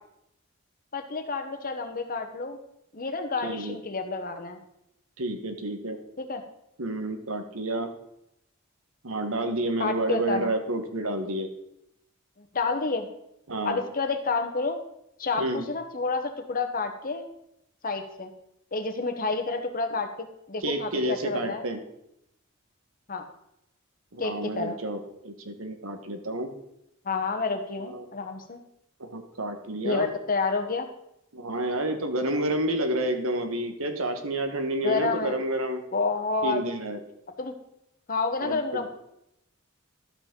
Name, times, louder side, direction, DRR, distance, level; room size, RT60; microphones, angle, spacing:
voice 1, 0.9-2.6 2.9-4.6 6.2-6.4 9.8-10.5 12.4-13.1 13.6-14.8 15.2-17.3 17.8-18.3 18.7-21.6 23.1-23.2 24.2-24.8 27.0-28.6 29.8-30.9 34.8-35.4 35.9-36.6 37.4-37.5 38.1-38.9, left 4 dB, 40° left, 7 dB, 1.0 m, -29 dB
voice 2, 3.4-3.8 5.2-6.0 6.8-7.9 9.0-11.5 13.5-13.8 15.4-15.7 20.6-21.8 24.1-26.5 27.9-28.1 29.0-30.1 31.3-35.8 36.4-37.0 38.4-38.8, right 1 dB, 75° right, 7 dB, 1.2 m, -29 dB
12.0 x 7.8 x 3.8 m, 0.81 s
head